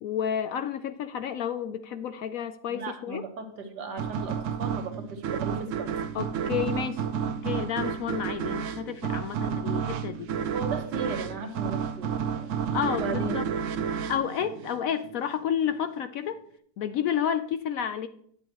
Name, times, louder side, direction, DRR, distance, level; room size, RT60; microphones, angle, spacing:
voice 1, 0.0-3.2 6.1-10.3 12.7-13.5 13.9-16.4 16.8-18.1, left 9 dB, 70° left, 10 dB, 0.9 m, -31 dB
voice 2, 2.7-5.9 10.5-12.5 13.0-13.4, right 4 dB, 80° right, 5 dB, 1.8 m, -36 dB
sound 1, 4.0-15.2, right 7 dB, 65° right, 0.8 m, -31 dB
11.0 x 9.0 x 3.0 m, 0.64 s
omnidirectional pair, 1.8 m